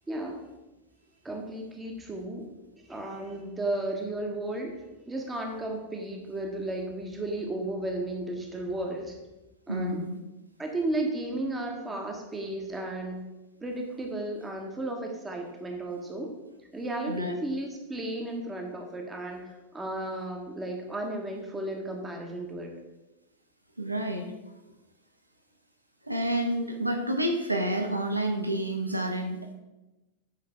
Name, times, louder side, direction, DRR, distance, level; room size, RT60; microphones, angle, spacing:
voice 1, 0.1-0.5 1.2-2.5 2.8-4.8 5.1-9.2 9.7-10.0 10.6-13.2 13.6-16.3 16.7-22.8, right 1 dB, 15° right, 2 dB, 1.2 m, -34 dB
voice 2, 9.7-10.2 17.1-17.3 23.8-24.3 26.1-29.5, right 1 dB, 85° right, 4 dB, 0.8 m, -29 dB
8.4 x 5.2 x 3.4 m, 1.0 s
figure-of-eight pair, 90°, 0 cm